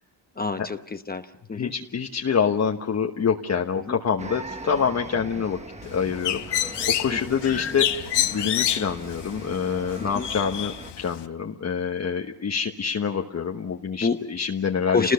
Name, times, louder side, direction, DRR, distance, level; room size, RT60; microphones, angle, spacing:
voice 1, 0.4-1.2 1.5-1.7 3.9-4.0 7.1-7.2 10.0-10.3 14.0-14.2 14.9-15.1, left 4 dB, 20° left, 7 dB, 0.9 m, -26 dB
voice 2, 1.5-6.7 7.0-15.1, left 6 dB, 35° left, 2 dB, 1.2 m, -26 dB
sound 1, 4.2-10.9, right 3 dB, 15° right, 1.2 m, -40 dB
Bird, 5.8-11.3, left 11 dB, 65° left, 1.2 m, -28 dB
29.5 x 20.0 x 5.7 m, 0.86 s
cardioid pair, 135°, 44 cm